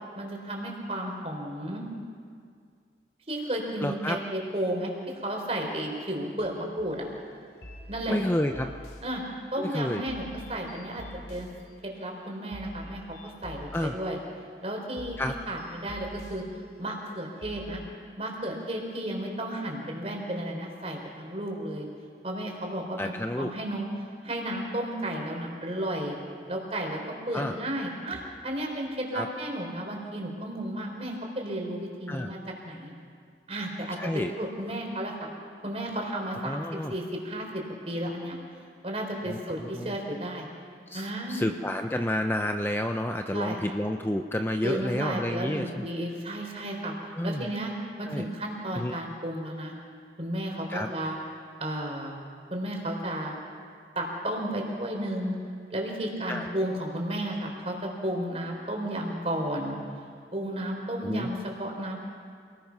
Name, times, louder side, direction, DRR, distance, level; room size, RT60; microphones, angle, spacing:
voice 1, 0.1-1.9 3.3-7.1 7.9-8.2 9.0-9.2 9.5-11.5 11.8-14.2 14.6-15.2 15.5-16.4 16.8-17.8 18.2-21.9 22.2-23.1 23.4-26.2 26.5-32.4 32.6-32.9 33.5-35.3 35.6-38.4 38.8-40.5 40.9-41.5 43.3-43.6 44.6-49.7 50.2-51.2 51.6-52.2 52.5-53.4 53.9-55.3 55.7-59.8 60.3-62.1, right 1 dB, 35° right, 1 dB, 4.3 m, -33 dB
voice 2, 3.8-4.2 8.1-8.7 9.6-10.0 13.7-13.9 15.2-15.4 23.0-23.5 27.3-27.5 29.1-29.3 32.1-32.3 34.0-34.3 36.4-36.9 39.3-40.0 40.9-45.9 47.1-47.5 48.1-48.3 48.7-49.0 50.7-50.9 56.3-56.5 61.0-61.3, left 1 dB, 10° left, 5 dB, 0.6 m, -30 dB
sound 1, 6.9-17.9, equal, 65° left, 3.4 m, -47 dB
28.0 x 20.0 x 6.1 m, 2.1 s
head